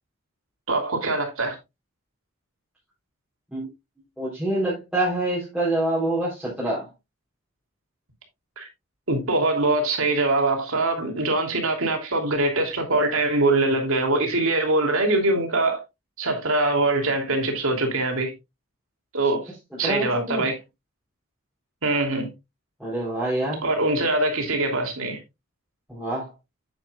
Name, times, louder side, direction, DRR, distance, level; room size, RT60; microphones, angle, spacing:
voice 1, 0.7-1.6 8.6-8.7 9.1-15.8 16.2-18.3 19.1-19.4 19.8-20.5 21.8-22.3 23.6-25.2, right 2 dB, 80° right, 3.0 m, -23 dB
voice 2, 4.2-6.9 19.8-20.5 22.8-23.6 25.9-26.3, right 1 dB, 5° right, 3.7 m, -26 dB
9.2 x 9.2 x 2.4 m
head